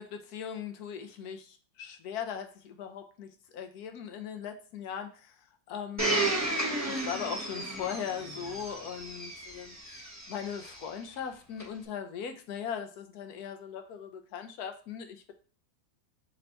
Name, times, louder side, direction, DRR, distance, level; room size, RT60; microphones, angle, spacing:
voice 1, 0.0-6.3 6.8-15.3, left 8 dB, 80° left, 6 dB, 1.2 m, -39 dB
Domestic sounds home sounds, 6.0-10.8 11.6-11.7, right 2 dB, 15° right, 0.7 m, -33 dB
4.4 x 2.7 x 4.3 m, 0.38 s
omnidirectional pair, 1.6 m